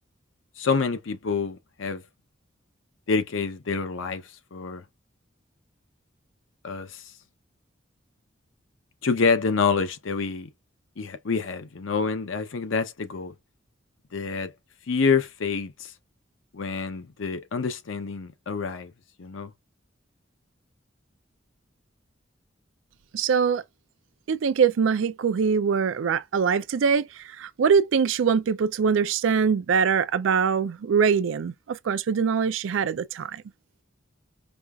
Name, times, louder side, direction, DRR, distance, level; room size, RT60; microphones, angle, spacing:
voice 1, 0.6-2.0 3.1-4.2 4.5-4.8 6.6-7.0 9.0-10.5 11.0-13.3 14.1-14.5 14.9-15.9 16.5-18.9 19.2-19.5, left 5 dB, 85° left, 0.7 m, -27 dB
voice 2, 23.1-23.6 24.3-33.4, right 6 dB, 80° right, 0.4 m, -23 dB
5.1 x 2.3 x 2.3 m
head